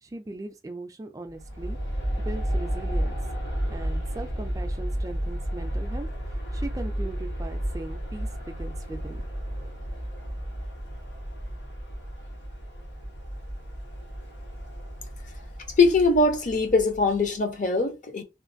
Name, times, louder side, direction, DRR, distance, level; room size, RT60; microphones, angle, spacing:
voice 1, 0.0-1.8 2.2-3.2 3.7-9.3, right 2 dB, 20° right, 0.3 m, -39 dB
Aircraft, 1.3-17.4, equal, 85° left, 1.3 m, -32 dB
voice 2, 15.8-18.2, left 3 dB, 45° left, 0.6 m, -22 dB
3.1 x 2.4 x 2.6 m
head